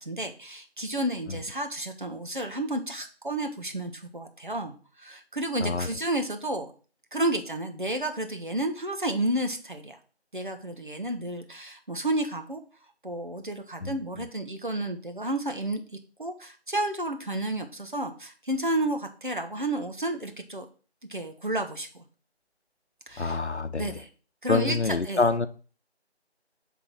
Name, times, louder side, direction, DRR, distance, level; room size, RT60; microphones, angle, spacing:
voice 1, 0.0-6.7 7.1-10.0 10.3-12.6 13.0-15.8 16.2-20.7 21.1-22.0 23.1-23.4 23.8-24.1 24.4-24.8 25.1-25.2, right 1 dB, 45° right, 1.0 m, -31 dB
voice 2, 23.2-24.0 24.5-25.5, left 3 dB, 90° left, 0.8 m, -26 dB
7.2 x 3.7 x 4.7 m
figure-of-eight pair, 170°, 33 cm